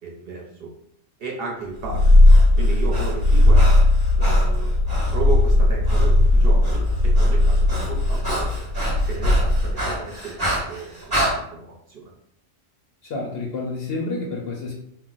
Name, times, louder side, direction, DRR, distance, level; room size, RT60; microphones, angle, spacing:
voice 1, 0.0-0.7 1.2-2.2 2.6-3.7 4.2-8.7 9.1-12.1, right 3 dB, 60° right, -2 dB, 0.8 m, -34 dB
Purr, 1.8-9.9, left 1 dB, 90° left, 1.1 m, -17 dB
Breathing, 2.0-5.2 5.9-6.1 6.4-11.3, right 1 dB, 20° right, 0.9 m, -29 dB
voice 2, 13.0-14.7, left 3 dB, 60° left, 0 dB, 0.7 m, -29 dB
2.4 x 2.1 x 3.8 m, 0.73 s
omnidirectional pair, 1.3 m